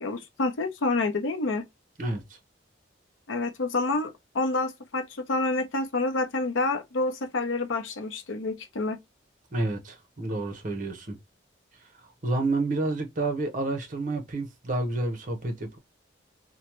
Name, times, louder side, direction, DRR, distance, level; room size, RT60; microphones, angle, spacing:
voice 1, 0.0-1.6 3.3-9.0, left 3 dB, 90° left, 0.6 m, -28 dB
voice 2, 9.5-11.2 12.2-15.8, right 2 dB, 45° right, 0.8 m, -29 dB
3.0 x 2.1 x 2.9 m
head